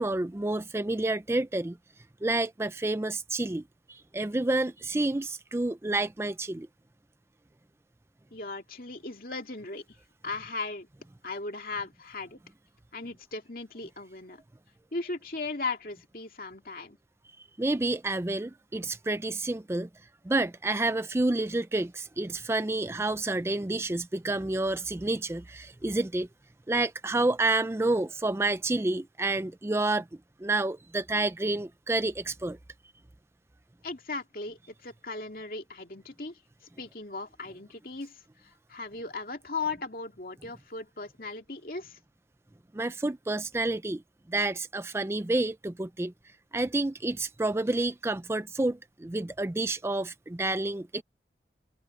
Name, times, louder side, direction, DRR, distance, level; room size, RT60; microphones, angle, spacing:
voice 1, 0.0-1.8 2.2-3.6 3.9-6.7 17.6-19.9 20.2-26.3 26.7-30.1 30.4-32.6 42.7-44.0 44.3-46.1 46.5-51.0, right 2 dB, 15° right, 0.4 m, -29 dB
voice 2, 8.3-9.8 10.2-10.9 11.2-12.4 12.9-14.4 14.9-17.0 33.8-36.4 36.8-42.0, left 3 dB, 55° left, 2.6 m, -37 dB
open air
head